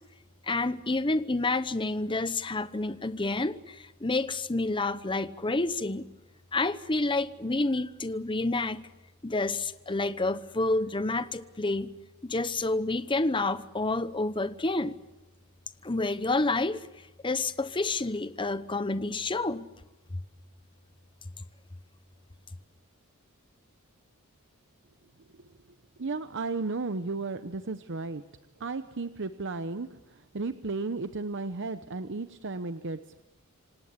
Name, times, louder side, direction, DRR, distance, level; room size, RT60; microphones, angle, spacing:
voice 1, 0.5-6.1 6.5-8.9 9.2-11.9 12.2-15.0 15.8-16.9 17.2-19.7, left 2 dB, 20° left, 0.9 m, -29 dB
voice 2, 26.0-28.2 28.6-33.2, right 3 dB, 55° right, 0.8 m, -34 dB
27.5 x 18.0 x 8.2 m
head